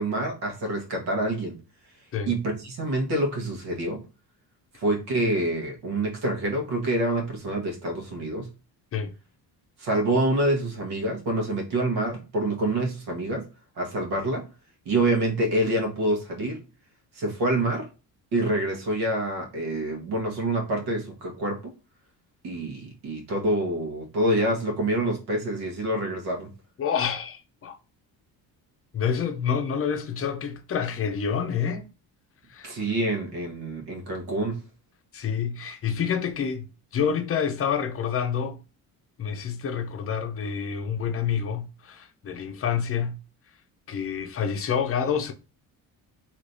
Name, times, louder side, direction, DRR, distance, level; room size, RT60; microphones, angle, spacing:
voice 1, 0.0-1.6 2.3-4.0 4.8-8.5 9.8-13.5 13.8-14.5 14.8-16.6 17.1-17.9 18.3-21.7 22.4-26.5 32.6-34.6, right 1 dB, 80° right, 1.3 m, -26 dB
voice 2, 26.8-27.8 28.9-31.9 32.5-32.7 35.1-36.7 36.9-38.6 39.2-43.2 43.9-45.3, left 7 dB, 35° left, 0.6 m, -28 dB
3.3 x 2.9 x 2.6 m
cardioid pair, 120°, 38 cm